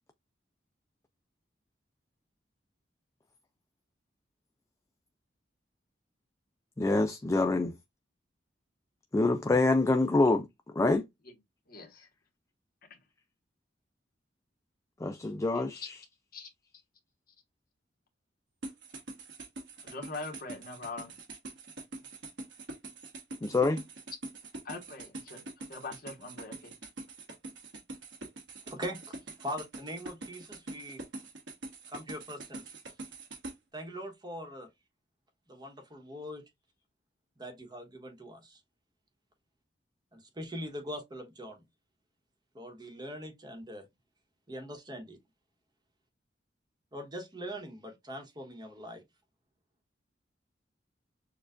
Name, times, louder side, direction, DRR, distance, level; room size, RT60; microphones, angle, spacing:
voice 1, 6.8-7.7 9.1-10.5 10.8-11.0 15.0-15.8 23.4-23.8, left 2 dB, 15° left, 0.3 m, -26 dB
voice 2, 11.7-12.1 12.9-13.0 15.5-15.9 16.3-16.5 19.8-21.2 24.6-26.7, left 3 dB, 55° left, 1.3 m, -43 dB
sound 1, 18.6-33.5, right 2 dB, 85° right, 1.3 m, -44 dB
voice 3, 28.7-31.0 31.9-32.7 33.7-34.7 35.5-36.4 37.4-38.6 40.1-41.6 42.5-43.9 44.5-45.2 46.9-49.0, equal, 25° right, 1.1 m, -42 dB
6.5 x 2.3 x 2.4 m
head